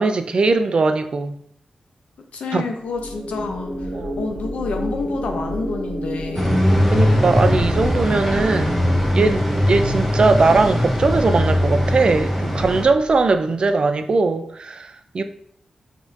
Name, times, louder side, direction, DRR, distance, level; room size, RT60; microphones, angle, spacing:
voice 1, 0.0-1.3 2.5-2.6 3.9-4.1 6.9-8.8 9.1-15.2, right 3 dB, 50° right, 9 dB, 0.3 m, -20 dB
voice 2, 2.3-6.6, left 4 dB, 85° left, 4 dB, 0.6 m, -29 dB
sound 1, 2.9-13.4, equal, 85° right, 0.9 m, -31 dB
sound 2, 6.3-12.8, left 1 dB, 5° left, 0.8 m, -20 dB
4.9 x 2.7 x 2.6 m, 0.65 s
wide cardioid pair, 105°, 2 cm